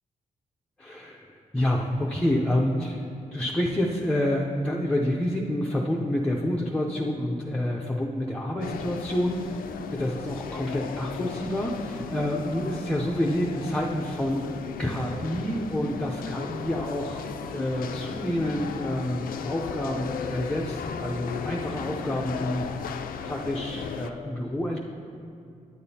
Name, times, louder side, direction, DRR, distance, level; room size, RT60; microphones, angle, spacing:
voice 1, 0.8-14.5 14.8-17.3 17.5-24.8, left 1 dB, 5° left, -3 dB, 0.5 m, -28 dB
sound 1, 8.6-24.1, left 6 dB, 85° left, 0.4 m, -36 dB
9.6 x 8.7 x 2.8 m, 2.4 s
wide cardioid pair, 130°, 14 cm